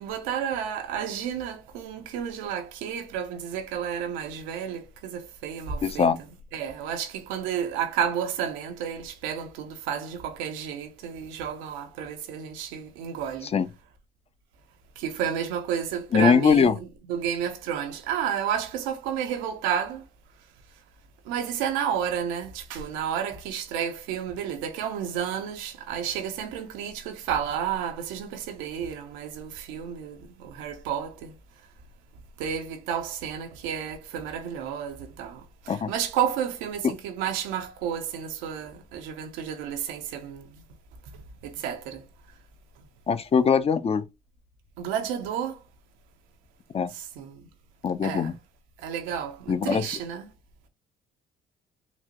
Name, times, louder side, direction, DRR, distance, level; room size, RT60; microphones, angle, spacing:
voice 1, 0.0-6.1 6.5-13.5 15.0-20.0 21.3-31.3 32.4-35.4 35.7-40.4 41.4-42.0 44.8-45.6 46.9-47.3 48.0-48.3 48.8-50.3, right 8 dB, 90° right, 0.6 m, -31 dB
voice 2, 5.8-6.2 13.5-13.7 16.1-16.7 35.7-35.9 43.1-44.0 46.7-46.9 47.8-48.3 49.5-49.8, left 6 dB, 30° left, 0.4 m, -21 dB
4.0 x 2.1 x 2.9 m
supercardioid pair, 75°, 19 cm